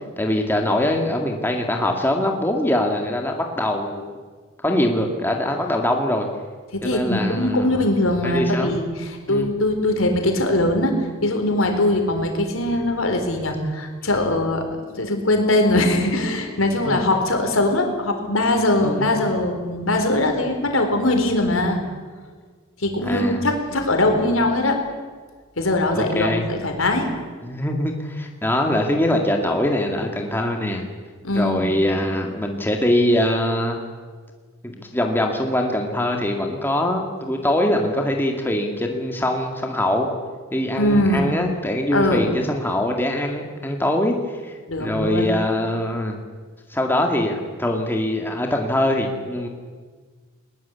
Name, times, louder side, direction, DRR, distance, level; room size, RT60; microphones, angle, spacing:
voice 1, 0.2-4.0 4.6-6.3 6.8-8.8 9.3-9.5 16.8-17.0 18.8-19.1 23.0-23.4 25.9-26.4 27.4-30.8 31.3-33.8 34.6-40.1 40.5-44.2 44.4-44.5 44.8-46.2 46.7-49.5, left 1 dB, 10° left, 2 dB, 2.3 m, -23 dB
voice 2, 6.7-14.6 15.0-21.8 22.8-24.8 25.6-27.1 31.2-31.7 40.8-41.3 41.9-42.3 44.7-45.3, left 1 dB, 85° left, 4 dB, 4.4 m, -21 dB
21.0 x 21.0 x 8.5 m, 1.5 s
head